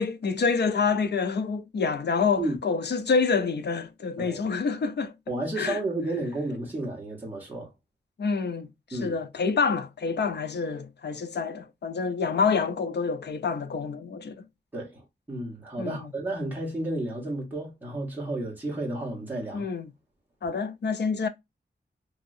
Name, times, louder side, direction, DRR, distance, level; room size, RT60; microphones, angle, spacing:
voice 1, 0.0-5.1 5.6-5.8 8.2-14.4 15.8-16.1 19.5-19.9 20.4-21.3, left 5 dB, 70° left, 0.6 m, -27 dB
voice 2, 5.3-7.7 8.9-9.1 14.7-19.7, right 1 dB, 10° right, 1.3 m, -32 dB
3.0 x 2.7 x 2.5 m
wide cardioid pair, 105°, 18 cm